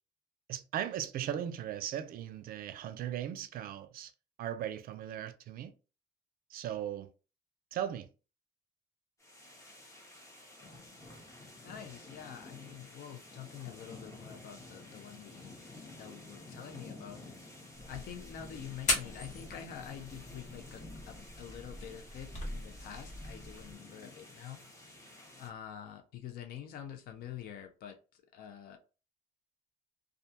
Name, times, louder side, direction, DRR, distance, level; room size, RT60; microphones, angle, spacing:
voice 1, 0.5-4.1 4.4-5.7 6.5-7.1 7.7-8.1, right 10 dB, 60° right, 0.4 m, -38 dB
sound 1, 9.2-25.5, left 2 dB, 20° left, 0.8 m, -51 dB
voice 2, 11.6-17.4 17.9-24.6 25.4-28.0 28.3-28.8, left 9 dB, 65° left, 0.5 m, -47 dB
sound 2, 17.8-23.7, left 2 dB, 45° left, 1.1 m, -40 dB
2.4 x 2.3 x 2.7 m
cardioid pair, 110°, 17 cm